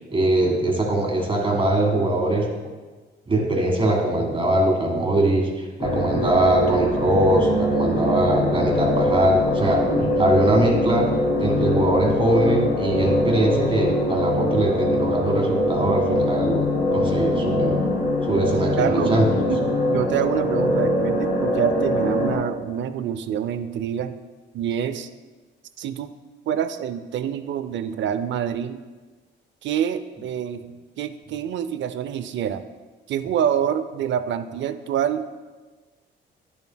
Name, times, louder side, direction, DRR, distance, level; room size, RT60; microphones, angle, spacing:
voice 1, 0.1-2.4 3.3-5.5 5.8-11.1 11.4-17.8 18.2-19.5, right 1 dB, 25° right, 0 dB, 1.7 m, -21 dB
sound 1, 5.8-22.4, left 1 dB, 45° left, 2.2 m, -23 dB
voice 2, 18.8-19.1 19.5-24.1 24.5-25.1 25.8-26.1 26.5-28.8 29.6-30.6 31.0-32.6 33.1-35.3, right 9 dB, 70° right, 11 dB, 0.5 m, -26 dB
10.0 x 7.1 x 2.2 m, 1.3 s
cardioid pair, 90°, 20 cm